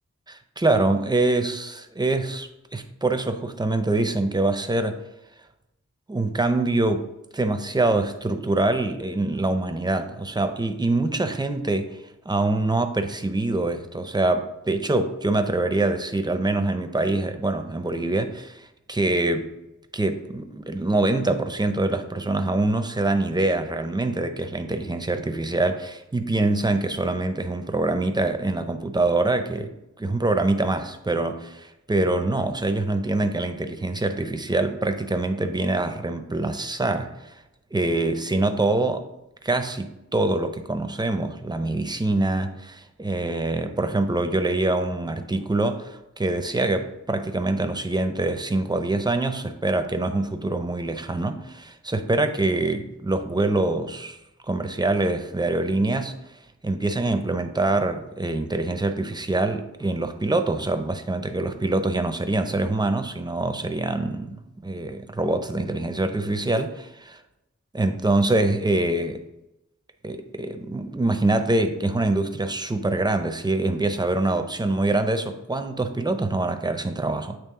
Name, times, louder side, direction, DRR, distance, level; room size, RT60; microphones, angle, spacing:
voice 1, 0.3-5.0 6.1-12.0 12.3-19.5 19.9-37.4 37.7-39.0 39.4-54.2 54.5-56.2 56.6-66.7 67.7-69.2 70.0-77.4, right 2 dB, 15° right, 7 dB, 0.6 m, -25 dB
8.4 x 3.1 x 3.7 m, 0.91 s
wide cardioid pair, 60°, 31 cm